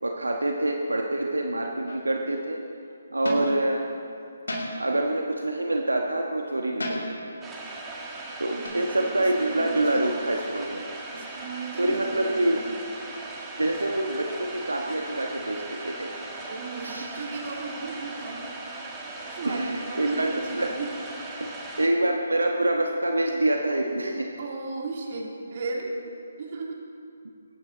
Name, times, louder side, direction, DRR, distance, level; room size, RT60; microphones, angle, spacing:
voice 1, 0.0-2.6 3.1-3.8 4.8-7.1 8.4-10.8 11.8-12.6 13.6-16.1 16.8-17.1 19.4-20.3 20.5-20.8 21.4-21.5 21.8-24.3, right 1 dB, 85° right, 1 dB, 1.3 m, -26 dB
sound 1, 1.9-2.2 3.2-3.6 4.5-5.0 6.8-7.3 8.6-8.7, left 1 dB, 70° left, 3.8 m, -33 dB
sound 2, 7.4-21.9, right 2 dB, 10° right, 1.5 m, -38 dB
voice 2, 8.5-10.1 11.1-12.7 16.5-18.5 19.4-20.9 24.4-25.9 26.4-26.9, right 3 dB, 45° right, -1 dB, 2.5 m, -36 dB
22.0 x 9.7 x 4.0 m, 2.4 s
figure-of-eight pair, 145°, 0 cm